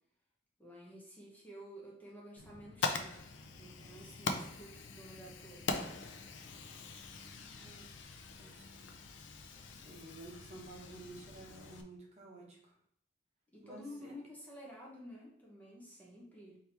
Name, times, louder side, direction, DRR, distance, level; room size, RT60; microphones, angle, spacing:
voice 1, 0.6-3.3 3.6-5.8 13.5-16.6, equal, 10° left, -4 dB, 0.8 m, -52 dB
Fire, 2.4-11.8, left 4 dB, 80° left, 0.5 m, -42 dB
voice 2, 9.8-12.7 13.6-14.1, right 2 dB, 35° right, -3 dB, 1.1 m, -52 dB
4.5 x 2.8 x 3.3 m, 0.69 s
head